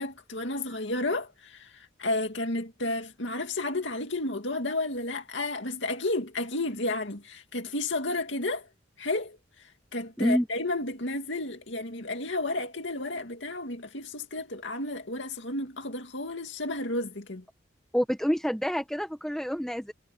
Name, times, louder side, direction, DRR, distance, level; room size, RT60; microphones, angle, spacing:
voice 1, 0.0-8.7 9.0-17.4, left 2 dB, 70° left, 2.4 m, -32 dB
voice 2, 17.9-19.9, equal, 5° left, 1.3 m, -27 dB
head